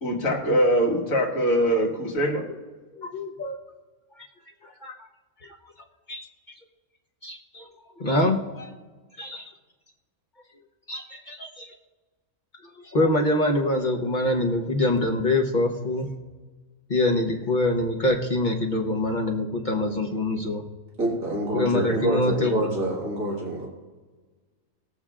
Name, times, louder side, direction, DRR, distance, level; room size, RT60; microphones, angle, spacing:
voice 1, 0.0-2.5, equal, 90° left, -1 dB, 2.0 m, -22 dB
voice 2, 2.9-3.6 4.2-4.3 4.6-5.1 5.4-5.7 6.1-6.2 7.2-7.7 8.0-8.7 9.2-9.5 10.9-11.7 12.6-16.1 16.9-20.6 21.5-22.7, left 1 dB, 40° left, 1 dB, 1.0 m, -25 dB
voice 3, 21.0-23.7, right 1 dB, 85° right, -4 dB, 2.4 m, -26 dB
21.0 x 7.0 x 2.4 m, 1.3 s
omnidirectional pair, 1.4 m